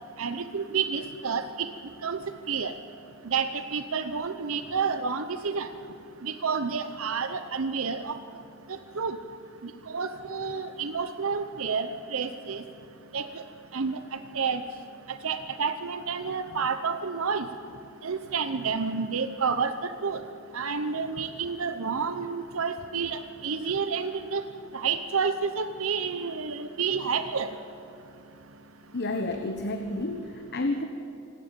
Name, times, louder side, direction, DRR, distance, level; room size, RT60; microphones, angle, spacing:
voice 1, 0.2-1.7 2.0-2.2 2.5-2.7 3.3-5.7 6.2-8.2 9.0-9.2 9.9-12.6 13.1-13.3 13.7-14.0 14.3-14.6 15.2-17.5 18.0-19.7 20.0-20.2 20.5-24.4 24.7-27.5, right 5 dB, 70° right, 10 dB, 0.8 m, -29 dB
voice 2, 28.9-30.8, left 2 dB, 55° left, 6 dB, 1.1 m, -30 dB
26.0 x 12.5 x 8.9 m, 2.7 s
head